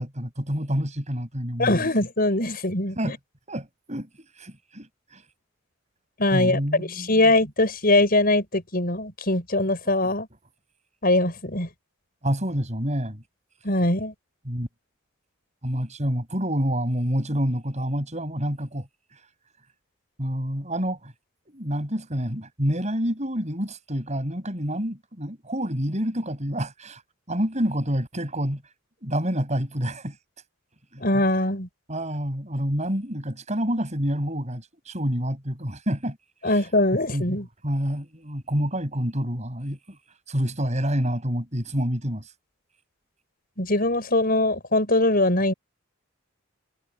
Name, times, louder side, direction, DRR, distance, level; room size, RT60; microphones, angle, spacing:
voice 1, 0.0-1.9 3.0-3.1 3.5-4.1 4.4-4.9 5.1-5.2 6.3-7.2 12.2-13.2 14.5-14.7 15.6-18.9 20.2-21.1 21.5-27.0 27.3-28.6 29.0-30.2 30.9-31.0 31.9-36.2 36.4-36.5 37.1-37.4 37.6-40.0 40.3-42.3, equal, 35° right, 6.8 m, -28 dB
voice 2, 1.6-3.2 6.2-10.3 11.0-11.7 13.6-14.1 31.0-31.7 36.4-37.5 43.6-45.5, left 2 dB, 45° left, 7.7 m, -22 dB
head